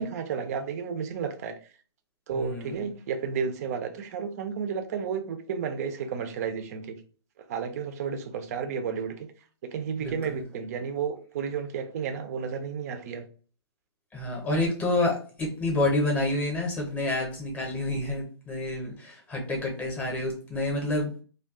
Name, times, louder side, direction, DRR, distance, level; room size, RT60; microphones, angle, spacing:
voice 1, 0.0-1.5 2.3-7.0 7.5-9.3 9.7-13.3, right 6 dB, 35° right, 7 dB, 0.4 m, -32 dB
voice 2, 2.3-2.9 10.0-10.4 14.1-21.1, left 2 dB, 10° left, -1 dB, 0.7 m, -28 dB
2.3 x 2.2 x 3.5 m, 0.39 s
hypercardioid pair, 160°, 14 cm